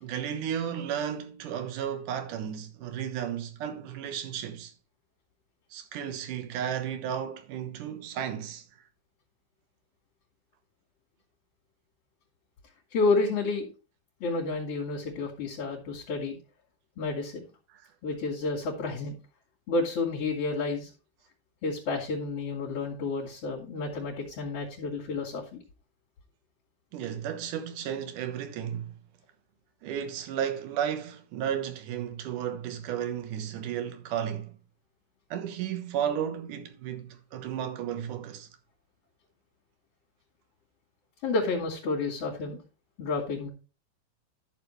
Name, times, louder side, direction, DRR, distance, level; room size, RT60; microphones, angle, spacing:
voice 1, 0.0-4.7 5.7-8.7 17.7-17.8 26.9-28.9 29.8-34.6 35.3-38.5, right 9 dB, 65° right, 2.5 m, -33 dB
voice 2, 12.9-13.7 14.2-16.4 17.0-17.4 18.0-19.1 19.7-20.9 21.6-25.6 41.2-42.6 43.0-43.5, left 3 dB, 45° left, 2.7 m, -30 dB
12.0 x 6.7 x 3.2 m
omnidirectional pair, 4.3 m